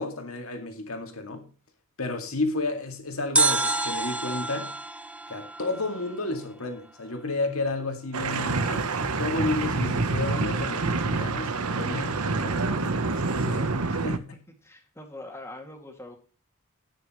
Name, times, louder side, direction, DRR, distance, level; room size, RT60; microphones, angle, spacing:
voice 1, 0.0-1.5 2.0-4.7 5.3-14.4, left 2 dB, 70° left, 2.3 m, -32 dB
sound 1, 3.4-6.4 6.7-6.8, right 3 dB, 5° right, 0.8 m, -28 dB
sound 2, 8.1-14.2, right 3 dB, 85° right, 1.0 m, -27 dB
voice 2, 14.6-16.2, left 2 dB, 10° left, 2.3 m, -43 dB
18.0 x 6.6 x 3.1 m
head